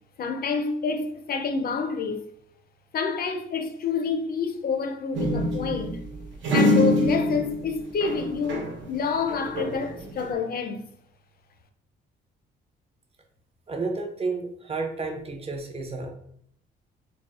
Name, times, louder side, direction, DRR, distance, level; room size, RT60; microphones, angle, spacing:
voice 1, 0.2-2.3 2.9-6.0 6.5-10.9, left 5 dB, 50° left, 0.5 m, -28 dB
sound 1, 5.1-8.9 9.2-10.3, left 1 dB, 70° right, 0.8 m, -25 dB
voice 2, 13.7-16.1, right 3 dB, 30° right, 0.6 m, -31 dB
4.1 x 2.0 x 2.3 m
cardioid pair, 90°, 20 cm